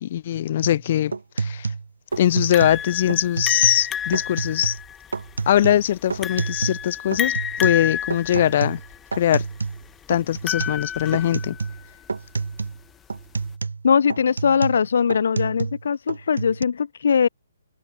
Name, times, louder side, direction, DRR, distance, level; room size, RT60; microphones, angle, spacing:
voice 1, 0.0-1.7 2.2-4.8 5.5-8.8 9.1-9.5 10.1-11.6, left 11 dB, 45° left, 2.3 m, -21 dB
sound 1, 0.6-0.8 1.1-2.8 3.1-3.9 4.1-4.8 5.1-6.9 7.1-9.8 10.1-10.8 11.1-11.8 12.1-12.8 13.1-15.8 16.1-16.6, right 4 dB, 80° right, 4.8 m, -29 dB
sound 2, 2.5-11.8, left 8 dB, 15° left, 5.8 m, -30 dB
voice 2, 13.8-17.3, left 6 dB, 65° left, 0.7 m, -20 dB
hypercardioid pair, 140°, 0 cm